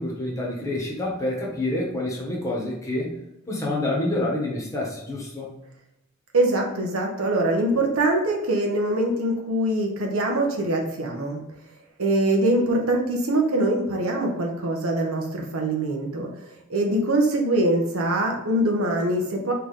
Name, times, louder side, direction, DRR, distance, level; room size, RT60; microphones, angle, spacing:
voice 1, 0.0-3.1 3.5-5.5, left 1 dB, 15° left, -3 dB, 1.1 m, -27 dB
voice 2, 6.3-11.4 12.0-16.3 16.7-19.5, right 1 dB, 80° right, 1 dB, 1.0 m, -23 dB
3.8 x 3.4 x 3.9 m, 0.86 s
head